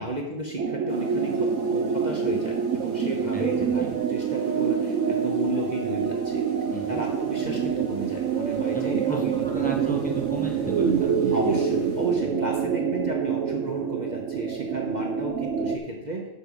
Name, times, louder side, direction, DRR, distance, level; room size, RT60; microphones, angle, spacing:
voice 1, 0.0-6.4 6.9-9.8 11.3-16.3, right 2 dB, 35° right, 0 dB, 1.2 m, -33 dB
sound 1, 0.6-15.8, right 7 dB, 70° right, 1.0 m, -26 dB
sound 2, 0.9-12.4, equal, 90° left, 3.9 m, -43 dB
voice 2, 3.3-3.7 6.7-7.0 8.7-11.4, right 1 dB, 5° left, -1 dB, 1.4 m, -35 dB
9.8 x 6.9 x 5.4 m, 0.99 s
omnidirectional pair, 1.4 m